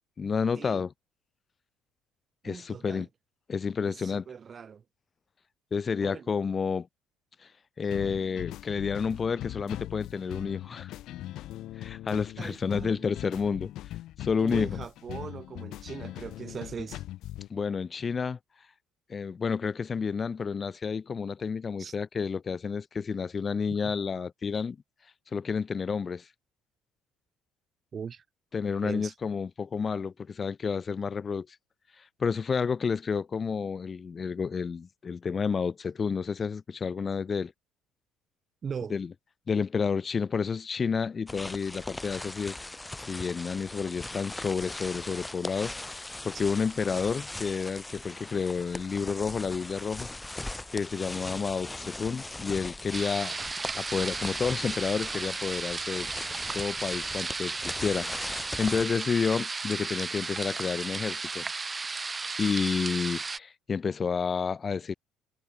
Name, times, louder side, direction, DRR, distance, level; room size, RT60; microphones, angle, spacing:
voice 1, 0.2-0.9 2.4-3.1 3.5-4.3 5.7-6.9 7.8-10.9 11.8-13.7 14.2-14.8 17.5-18.4 19.1-24.8 25.3-26.3 28.5-31.5 32.2-37.5 38.9-39.1 39.5-42.6 43.1-50.1 50.7-53.4 53.7-56.1 56.5-61.4 62.4-64.9, left 5 dB, 35° left, 2.0 m, -30 dB
voice 2, 2.4-3.1 3.8-4.8 6.0-6.3 12.4-13.0 14.4-17.0 21.8-21.9 23.8-23.9 27.9-28.2 28.8-29.1 38.6-38.9, right 6 dB, 40° right, 1.8 m, -40 dB
sound 1, 7.9-17.5, left 15 dB, 70° left, 0.7 m, -40 dB
sound 2, 41.3-58.9, left 2 dB, 10° left, 3.2 m, -40 dB
sound 3, 52.9-63.4, right 4 dB, 25° right, 2.9 m, -34 dB
supercardioid pair, 75°, 0 cm